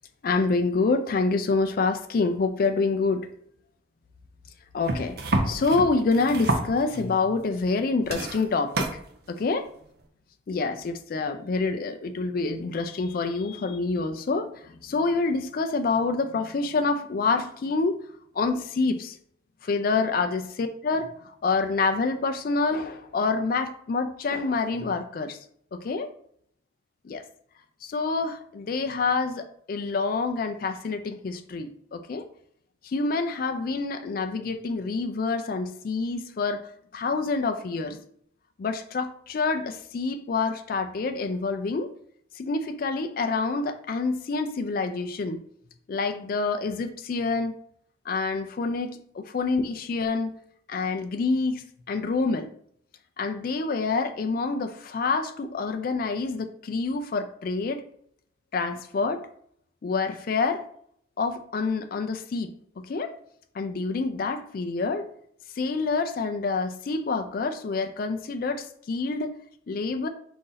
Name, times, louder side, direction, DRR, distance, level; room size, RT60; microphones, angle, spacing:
voice 1, 0.2-3.3 4.7-8.9 9.3-9.7 10.5-18.0 18.3-19.2 19.6-21.1 21.4-25.4 25.7-26.1 27.0-27.2 27.8-32.2 32.8-36.6 36.9-38.0 38.6-41.9 42.4-45.4 45.9-47.5 48.1-50.3 50.7-52.5 53.2-57.8 58.5-59.3 59.8-60.7 61.2-63.2 63.5-65.1 65.6-69.3 69.7-70.1, left 4 dB, 50° left, 7 dB, 0.4 m, -27 dB
sound 1, 4.8-7.1 7.6-7.8 8.0-9.0 10.0-10.1, right 2 dB, 55° right, 0.6 m, -28 dB
3.9 x 2.6 x 3.8 m, 0.65 s
head